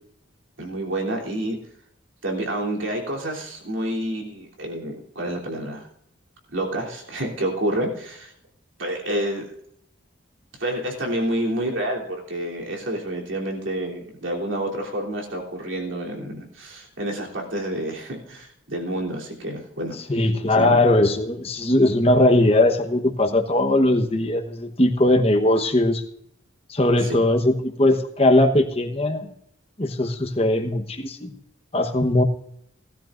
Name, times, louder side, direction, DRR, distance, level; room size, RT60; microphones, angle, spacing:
voice 1, 0.6-1.6 2.2-5.8 6.5-8.3 8.8-9.5 10.6-19.9 20.5-20.8 27.0-27.3, right 1 dB, 85° right, -1 dB, 3.2 m, -28 dB
voice 2, 20.1-26.0 26.7-29.3 29.8-31.3 31.7-32.2, left 1 dB, 30° left, 6 dB, 1.1 m, -19 dB
18.0 x 13.0 x 2.6 m, 0.71 s
head